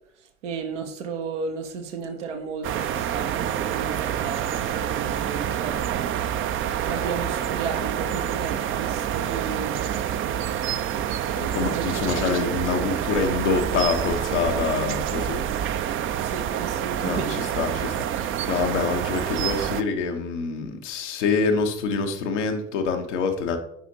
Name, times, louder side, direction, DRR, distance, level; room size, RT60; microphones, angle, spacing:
voice 1, 0.4-5.8 6.8-9.8 11.6-11.9 12.2-12.5 15.8-17.4, right 5 dB, 80° right, 0.9 m, -34 dB
sound 1, 2.6-19.8, right 10 dB, 35° right, 0.5 m, -27 dB
voice 2, 11.4-15.4 17.0-23.6, left 4 dB, 75° left, 1.0 m, -26 dB
9.1 x 5.0 x 2.7 m
figure-of-eight pair, 55°, 36 cm